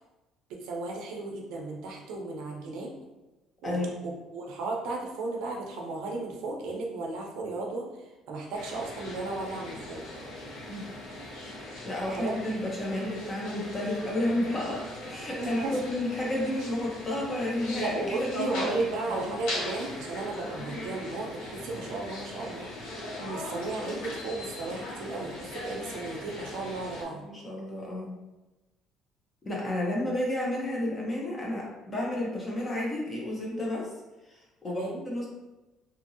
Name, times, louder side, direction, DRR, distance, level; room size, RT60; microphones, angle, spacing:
voice 1, 0.5-2.9 3.6-3.8 4.3-10.0 12.1-12.3 15.4-15.8 17.8-27.3 34.6-35.0, right 2 dB, 75° right, 0 dB, 0.6 m, -34 dB
voice 2, 3.6-4.0 10.7-10.9 11.8-19.3 27.2-28.2 29.4-33.9 34.3-34.8 35.1-35.3, left 1 dB, 20° left, -3 dB, 0.6 m, -31 dB
sound 1, 8.5-27.0, left 1 dB, 80° left, 0.9 m, -40 dB
2.7 x 2.7 x 2.6 m, 1.1 s
cardioid pair, 175°, 0 cm